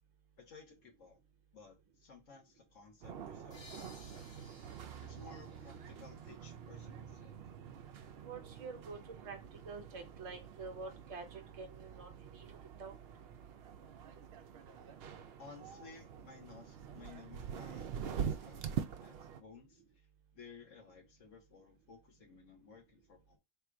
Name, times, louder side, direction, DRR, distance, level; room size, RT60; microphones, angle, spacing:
voice 1, 0.4-1.2 1.5-4.3 5.0-7.4 15.4-20.1 20.3-23.4, left 4 dB, 80° left, 1.5 m, -57 dB
sound 1, 3.0-19.4, right 8 dB, 65° right, 0.7 m, -45 dB
sound 2, 3.5-7.1, left 3 dB, 30° left, 0.5 m, -60 dB
voice 2, 8.2-12.5 12.8-12.9, right 4 dB, 30° right, 0.8 m, -47 dB
3.6 x 2.5 x 4.5 m
omnidirectional pair, 1.3 m